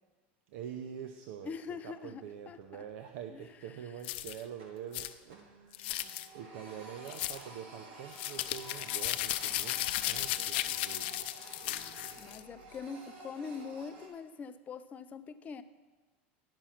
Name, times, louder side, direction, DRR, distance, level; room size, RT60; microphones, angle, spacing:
voice 1, 0.5-11.3 11.6-12.4, right 8 dB, 70° right, 6 dB, 0.6 m, -46 dB
voice 2, 1.4-2.8 3.3-3.5 12.2-15.6, left 5 dB, 25° left, 11 dB, 0.5 m, -43 dB
Printer, 2.6-3.1 3.4-3.6 4.0-5.6 5.9-14.1, right 2 dB, 85° right, 2.1 m, -52 dB
sound 1, 4.0-4.4 4.9-5.1 5.7-6.3 7.1-7.4 8.1-12.4, left 15 dB, 70° left, 0.5 m, -35 dB
10.5 x 6.2 x 5.7 m, 1.4 s
supercardioid pair, 130°, 6 cm